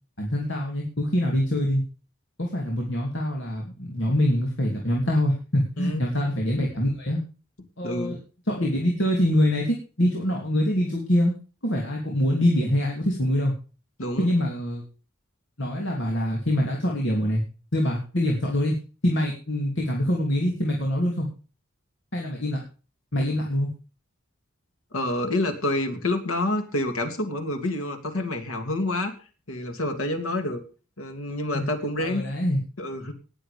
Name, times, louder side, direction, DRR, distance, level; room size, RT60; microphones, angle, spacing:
voice 1, 0.2-1.8 2.4-7.2 7.8-8.2 8.5-11.3 11.6-13.5 14.2-14.8 15.6-17.4 17.7-18.8 19.0-21.3 22.1-22.6 23.1-23.7 31.5-31.7 32.0-32.6, left 1 dB, 60° left, -1 dB, 3.2 m, -24 dB
voice 2, 5.8-6.1 7.8-8.2 14.0-14.3 24.9-29.1 29.5-30.6 31.0-32.3 32.8-33.1, left 1 dB, 90° left, 7 dB, 2.7 m, -28 dB
19.0 x 7.8 x 5.2 m, 0.37 s
head